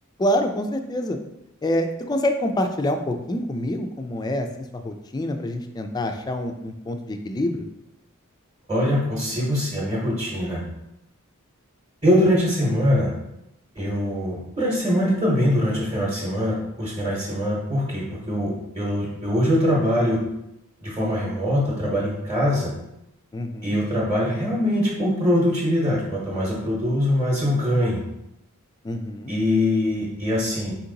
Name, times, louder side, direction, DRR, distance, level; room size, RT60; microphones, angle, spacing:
voice 1, 0.2-1.2 1.6-4.5 4.7-7.6 23.3-23.8 28.8-29.3, left 1 dB, 20° left, 6 dB, 0.3 m, -26 dB
voice 2, 8.7-10.6 12.0-13.1 13.8-20.2 20.8-22.7 23.6-28.0 29.3-30.8, equal, 20° right, -5 dB, 0.8 m, -23 dB
4.3 x 2.8 x 3.8 m, 0.88 s
head